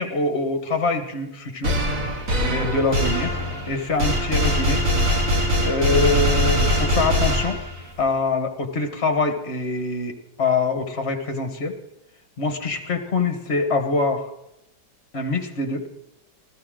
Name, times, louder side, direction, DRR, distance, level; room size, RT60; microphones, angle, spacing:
voice 1, 0.0-1.8 2.0-3.3 3.7-4.8 5.6-7.6 8.0-11.8 12.4-14.3 15.1-15.9, left 3 dB, 35° left, 7 dB, 1.6 m, -24 dB
sound 1, 1.6-8.0, equal, 45° right, 2.2 m, -22 dB
20.0 x 14.0 x 3.9 m, 0.83 s
omnidirectional pair, 2.1 m